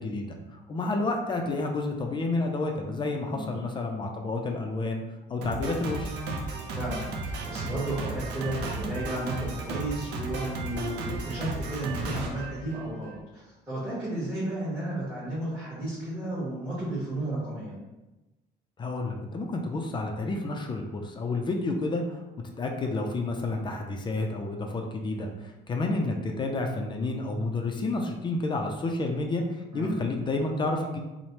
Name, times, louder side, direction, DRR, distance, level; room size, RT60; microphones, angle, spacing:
voice 1, 0.0-5.0 5.3-6.2 18.8-22.2 22.6-31.0, left 2 dB, 30° left, 2 dB, 0.3 m, -30 dB
Drum kit, 5.4-13.2, right 3 dB, 80° right, 0.5 m, -34 dB
voice 2, 6.7-17.8 29.7-30.0, right 1 dB, 10° right, -9 dB, 1.0 m, -33 dB
3.0 x 2.0 x 2.8 m, 1.1 s
cardioid pair, 110°, 17 cm